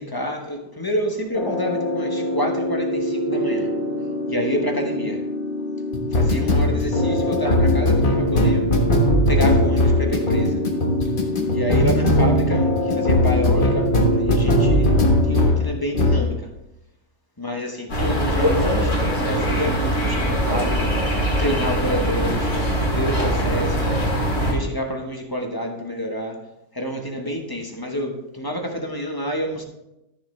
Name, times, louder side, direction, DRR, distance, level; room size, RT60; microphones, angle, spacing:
voice 1, 0.0-2.1 2.3-2.9 3.3-3.6 4.3-5.1 6.1-8.6 9.3-10.5 11.5-12.6 13.1-13.8 14.2-14.9 15.3-16.3 17.4-17.7 18.0-18.8 19.2-19.9 20.2-20.7 21.4-22.3 23.0-23.7 24.4-26.3 26.8-28.1 28.4-29.6, equal, 15° left, 2 dB, 1.1 m, -27 dB
sound 1, 1.3-15.6 15.9-16.3, left 1 dB, 35° left, 1.5 m, -20 dB
sound 2, 17.9-24.5, equal, 55° left, 2.8 m, -22 dB
14.0 x 6.7 x 3.3 m, 0.89 s
omnidirectional pair, 1.5 m